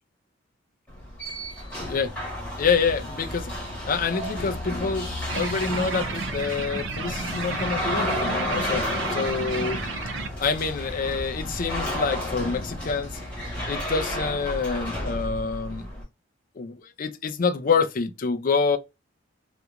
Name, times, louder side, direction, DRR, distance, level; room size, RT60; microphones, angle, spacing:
sound 1, 0.9-16.0, left 1 dB, 5° left, 1.2 m, -32 dB
voice 1, 2.6-3.5 3.8-8.9 9.1-9.8 10.4-13.2 13.7-15.9 16.6-18.8, left 5 dB, 45° left, 0.4 m, -27 dB
sound 2, 5.3-10.3, right 5 dB, 65° right, 0.5 m, -33 dB
2.8 x 2.6 x 2.3 m
head